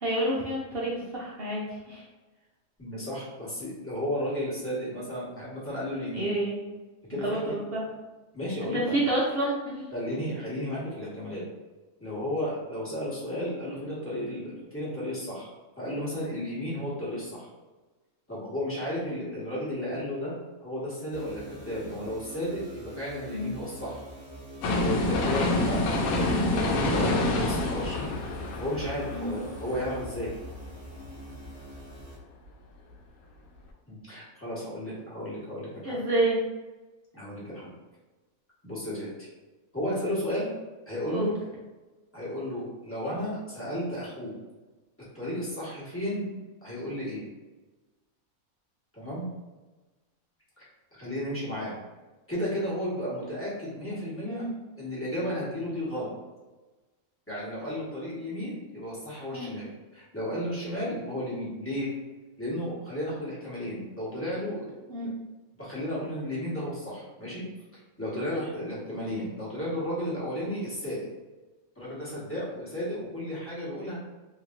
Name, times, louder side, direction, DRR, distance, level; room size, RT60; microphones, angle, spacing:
voice 1, 0.0-2.0 6.1-6.6 7.1-7.9 8.6-9.8 23.3-23.5 29.1-29.3 35.8-36.4 41.1-41.3 54.2-54.5 59.3-59.5 64.9-65.1, right 1 dB, 60° right, -5 dB, 0.7 m, -29 dB
voice 2, 2.8-6.3 7.1-7.6 8.3-9.0 9.9-11.4 12.0-15.5 15.8-17.5 18.3-24.0 24.8-28.2 28.6-30.3 33.9-36.0 37.1-37.7 38.6-39.3 39.7-40.5 40.9-41.3 42.1-44.3 45.1-46.3 46.6-47.2 48.9-49.3 50.6-50.7 51.0-51.8 52.3-54.4 54.8-56.1 57.3-61.9 62.4-64.7 65.6-67.4 67.7-71.1 71.7-74.0, equal, 10° left, -9 dB, 1.1 m, -33 dB
sound 1, 21.1-32.2, right 1 dB, 10° right, 0.8 m, -45 dB
sound 2, 24.6-30.6 31.0-31.1, left 2 dB, 80° left, 1.0 m, -27 dB
3.1 x 2.8 x 2.5 m, 1.2 s
omnidirectional pair, 1.5 m